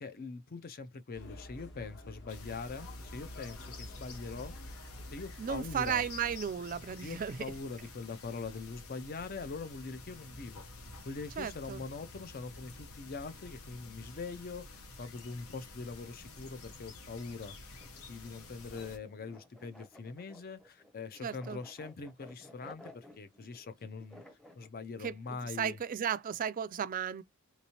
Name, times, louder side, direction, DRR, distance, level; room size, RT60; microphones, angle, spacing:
voice 1, 0.0-4.5 5.1-6.0 7.0-10.7 11.1-17.6 18.1-24.2 24.5-25.8, left 4 dB, 45° left, 0.5 m, -43 dB
sound 1, 1.1-6.4, left 1 dB, 60° left, 1.2 m, -48 dB
sound 2, 2.3-19.0, left 3 dB, 80° left, 0.9 m, -50 dB
voice 2, 5.4-7.5 11.4-11.8 21.2-21.6 25.0-25.2 25.4-27.2, right 8 dB, 40° right, 0.3 m, -34 dB
sound 3, 17.8-24.7, left 1 dB, 5° left, 0.6 m, -56 dB
3.4 x 3.0 x 2.8 m
head